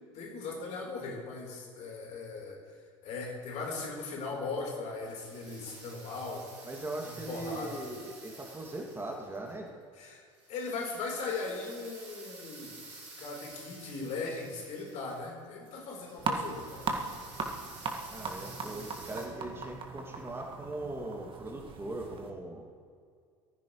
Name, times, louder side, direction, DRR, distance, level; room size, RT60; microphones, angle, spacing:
voice 1, 0.1-2.6 3.0-6.5 7.0-7.8 9.9-10.2 10.5-12.8 13.2-16.8, left 3 dB, 50° left, 0 dB, 4.0 m, -38 dB
sound 1, 5.0-9.6 10.3-19.3, right 2 dB, 75° right, 4.9 m, -51 dB
voice 2, 6.7-9.7 18.1-22.6, right 2 dB, 15° right, 0 dB, 2.4 m, -40 dB
sound 2, 16.2-22.3, right 4 dB, 35° right, 1.9 m, -38 dB
23.0 x 15.0 x 3.2 m, 2.2 s
figure-of-eight pair, 70°, 16 cm